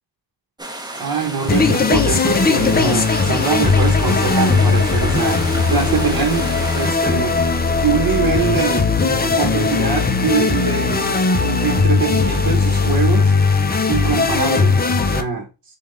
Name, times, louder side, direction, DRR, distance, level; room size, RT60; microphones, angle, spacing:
sound 1, 0.6-6.9, right 1 dB, 10° right, 0.8 m, -32 dB
voice 1, 0.9-5.4 5.7-13.3 13.9-15.5, right 5 dB, 55° right, 1.0 m, -23 dB
sound 2, 1.5-15.2, left 4 dB, 25° left, 0.5 m, -18 dB
5.4 x 2.4 x 3.3 m
wide cardioid pair, 100°, 43 cm